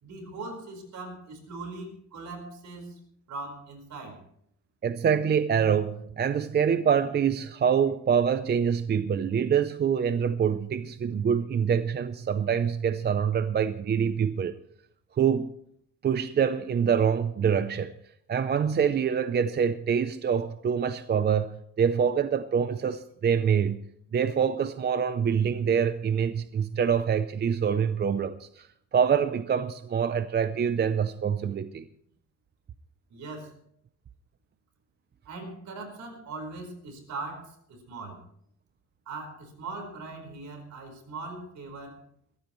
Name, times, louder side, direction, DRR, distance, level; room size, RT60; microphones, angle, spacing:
voice 1, 0.0-3.0 3.3-4.2 33.1-33.5 35.2-38.2 39.1-42.0, right 3 dB, 60° right, 4.6 m, -40 dB
voice 2, 4.8-14.5 15.2-15.6 16.0-17.9 18.3-23.8 24.1-28.7 28.9-31.9, right 7 dB, 30° right, 0.6 m, -25 dB
22.0 x 15.0 x 3.1 m
cardioid pair, 145°, 32 cm